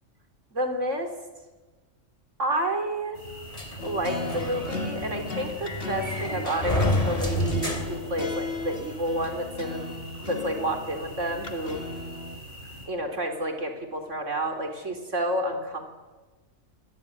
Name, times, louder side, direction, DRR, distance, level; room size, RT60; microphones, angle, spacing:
voice 1, 0.5-1.1 2.4-3.2 3.8-9.9 10.2-11.8 12.9-15.9, right 1 dB, 70° right, 6 dB, 4.7 m, -30 dB
sound 1, 3.1-12.9, equal, 40° right, 7.9 m, -43 dB
sound 2, 3.5-8.8, left 1 dB, 30° left, 3.7 m, -30 dB
sound 3, 3.8-12.4, left 3 dB, 50° left, 2.7 m, -37 dB
26.0 x 23.0 x 9.9 m, 1.2 s
omnidirectional pair, 1.3 m